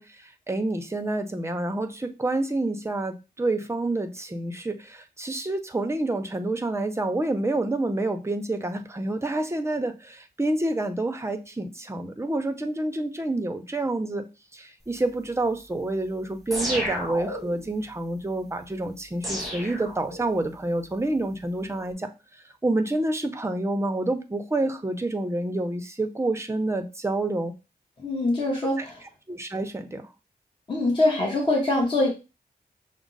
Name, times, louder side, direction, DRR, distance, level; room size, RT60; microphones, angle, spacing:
voice 1, 0.0-14.3 14.5-22.1 22.6-27.5 29.3-30.1, right 2 dB, 15° right, 6 dB, 0.6 m, -28 dB
sound 1, 16.5-17.7 19.2-20.5, equal, ahead, 1.1 m, -32 dB
voice 2, 28.0-29.0 30.7-32.1, left 2 dB, 30° left, -2 dB, 1.0 m, -23 dB
6.0 x 2.0 x 3.9 m, 0.28 s
wide cardioid pair, 135°, 17 cm